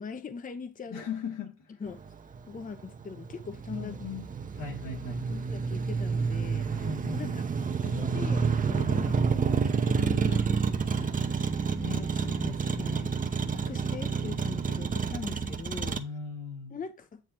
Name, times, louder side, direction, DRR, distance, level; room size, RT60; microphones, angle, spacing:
voice 1, 0.0-1.0 1.8-2.1 2.5-3.9 5.5-6.7 7.1-7.4 7.8-9.3 9.6-10.6 10.9-11.5 11.8-13.2 13.5-16.0 16.7-17.2, left 5 dB, 25° left, 0.7 m, -41 dB
voice 2, 0.9-1.8 3.7-5.5 6.7-7.4 10.3-10.5 12.3-13.1 15.9-16.8, left 5 dB, 90° left, 2.8 m, -39 dB
Motor vehicle (road), 1.9-16.0, right 5 dB, 25° right, 0.8 m, -29 dB
9.0 x 3.1 x 4.5 m
cardioid pair, 90°, 30 cm